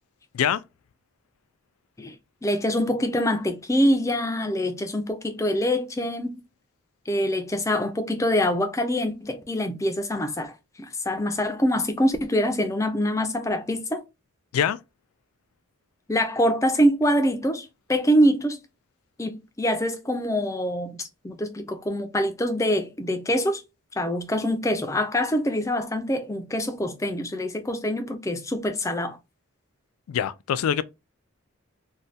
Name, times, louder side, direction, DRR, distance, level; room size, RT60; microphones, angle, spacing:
voice 1, 2.4-6.4 7.1-10.5 11.1-14.0 16.1-18.6 19.2-23.6 24.0-29.2, equal, 15° left, 0.4 m, -24 dB
voice 2, 30.1-30.8, left 9 dB, 80° left, 0.3 m, -24 dB
3.2 x 2.2 x 2.6 m
head